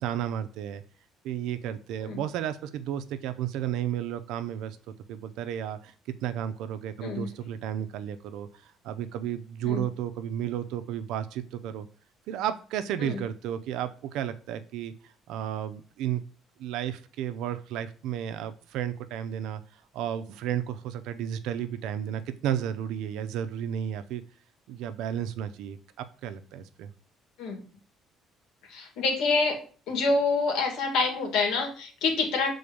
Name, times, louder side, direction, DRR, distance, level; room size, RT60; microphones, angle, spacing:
voice 1, 0.0-0.8 1.2-4.8 5.1-11.9 12.3-14.9 15.3-16.2 16.6-19.6 19.9-24.2 24.7-26.9, right 10 dB, 85° right, 10 dB, 0.7 m, -33 dB
voice 2, 28.7-29.6 29.9-32.5, left 4 dB, 80° left, 2 dB, 2.4 m, -27 dB
7.0 x 3.9 x 5.1 m, 0.41 s
cardioid pair, 160°, 0 cm